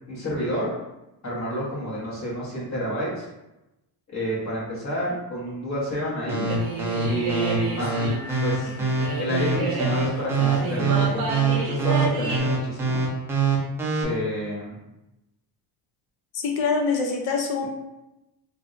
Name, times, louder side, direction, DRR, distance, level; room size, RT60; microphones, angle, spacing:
voice 1, 0.1-0.7 1.2-3.2 4.1-6.5 7.1-8.1 8.4-8.7 9.2-13.0 13.9-14.8, equal, 40° left, -6 dB, 1.1 m, -29 dB
sound 1, 6.3-14.0, right 5 dB, 5° right, 0.5 m, -24 dB
sound 2, 6.5-12.4, right 2 dB, 55° right, 0.8 m, -31 dB
voice 2, 16.3-17.7, left 4 dB, 65° left, 2 dB, 0.7 m, -24 dB
3.0 x 2.7 x 2.5 m, 0.95 s
cardioid pair, 140°, 42 cm